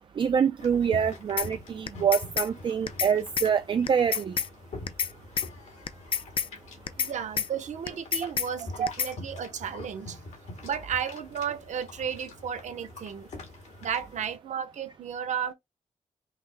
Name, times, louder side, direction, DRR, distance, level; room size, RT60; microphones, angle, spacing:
voice 1, 0.2-4.4 8.8-8.9, right 7 dB, 45° right, 0.4 m, -25 dB
sound 1, 0.6-14.4, left 2 dB, 75° left, 1.9 m, -45 dB
sound 2, 1.4-1.5 1.9-2.5 2.9-3.1 3.4-3.5 3.9-4.5 4.9-5.1 5.4-5.5 5.9-6.5 6.9-7.1 7.4-7.5 7.9-8.5 8.9-9.1, left 7 dB, 50° left, 0.5 m, -28 dB
voice 2, 7.0-10.2 10.6-13.3 13.8-15.5, right 8 dB, 85° right, 0.7 m, -33 dB
5.6 x 2.1 x 3.4 m
wide cardioid pair, 150°, 12 cm